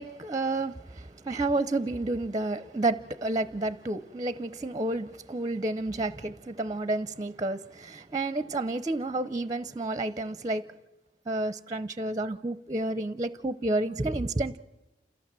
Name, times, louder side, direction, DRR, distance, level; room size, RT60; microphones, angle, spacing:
voice 1, 0.0-10.7 11.3-14.6, right 2 dB, 20° right, 0.6 m, -30 dB
28.5 x 14.5 x 7.5 m
head